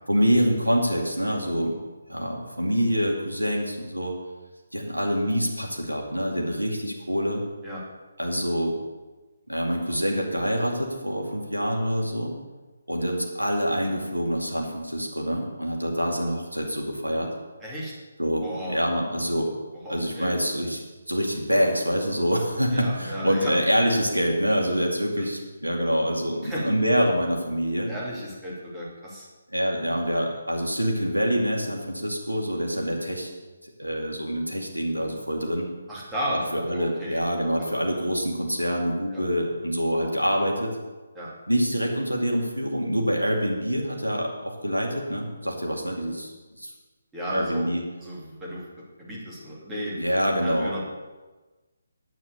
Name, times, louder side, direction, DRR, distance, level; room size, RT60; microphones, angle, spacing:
voice 1, 0.1-1.8 2.1-4.1 4.7-7.4 8.2-8.8 9.5-12.3 12.9-17.3 18.2-19.5 19.9-27.9 29.5-33.3 33.8-35.7 36.5-40.8 41.5-46.3 46.6-46.7 47.3-47.8 50.0-50.8, equal, 90° right, 0 dB, 2.4 m, -26 dB
voice 2, 17.6-17.9 18.4-18.8 19.8-20.3 22.7-23.6 25.2-25.3 26.4-26.7 27.9-29.3 35.9-37.2 37.6-37.7 39.1-39.2 41.1-41.3 47.1-47.7 48.0-50.0 50.4-50.8, equal, 10° right, -7 dB, 2.9 m, -34 dB
9.1 x 8.5 x 6.8 m, 1.2 s
figure-of-eight pair, 145°, 0 cm